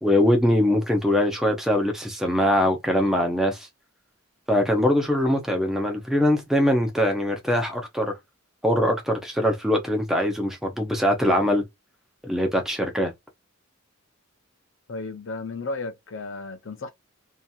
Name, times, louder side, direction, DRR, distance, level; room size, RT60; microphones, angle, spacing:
voice 1, 0.0-3.7 4.5-8.2 8.6-11.6 12.2-13.1, left 1 dB, ahead, 0.6 m, -22 dB
voice 2, 14.9-16.9, left 3 dB, 60° left, 0.6 m, -34 dB
2.8 x 2.4 x 2.3 m
head